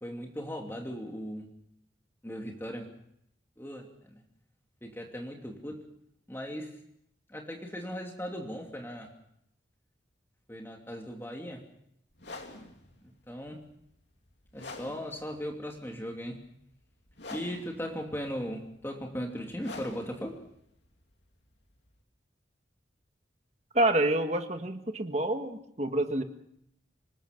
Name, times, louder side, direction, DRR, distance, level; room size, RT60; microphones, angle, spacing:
voice 1, 0.0-1.5 2.2-2.9 3.6-4.1 4.8-5.9 6.3-6.8 7.3-9.1 10.5-11.6 13.0-13.6 14.5-16.5 17.3-20.5, equal, 10° left, 2 dB, 2.7 m, -38 dB
sound 1, 12.1-22.0, left 3 dB, 70° left, 2.7 m, -48 dB
voice 2, 23.7-26.2, right 1 dB, 35° right, 6 dB, 1.6 m, -28 dB
27.0 x 19.5 x 5.3 m, 0.71 s
head